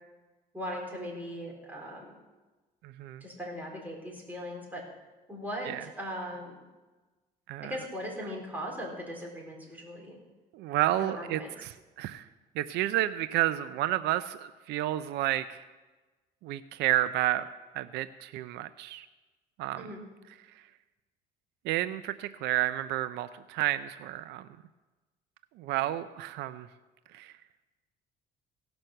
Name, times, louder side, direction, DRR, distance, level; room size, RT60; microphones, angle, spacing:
voice 1, 0.5-2.1 3.2-4.8 5.3-6.6 7.6-10.2 11.0-11.5 19.7-20.0, equal, 10° right, -2 dB, 4.1 m, -39 dB
voice 2, 2.8-3.2 5.7-5.8 7.5-7.7 10.5-11.7 12.0-12.2 12.6-15.6 16.4-17.4 17.8-19.1 19.6-19.9 21.6-24.5 25.6-26.7 27.1-27.3, right 14 dB, 85° right, 13 dB, 0.5 m, -30 dB
17.0 x 6.1 x 6.6 m, 1.2 s
cardioid pair, 110°, 17 cm